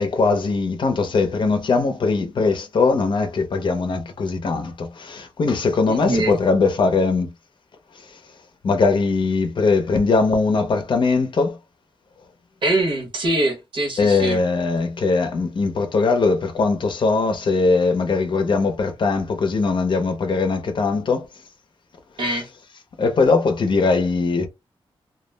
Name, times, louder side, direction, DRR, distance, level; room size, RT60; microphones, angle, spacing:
voice 1, 0.0-7.3 8.1-8.2 8.6-11.6 14.0-21.3 23.0-24.5, left 4 dB, 55° left, 0.5 m, -20 dB
voice 2, 5.9-6.4 12.6-14.4 22.2-22.5, right 1 dB, 60° right, 0.9 m, -23 dB
2.2 x 2.0 x 3.2 m
wide cardioid pair, 175°, 10 cm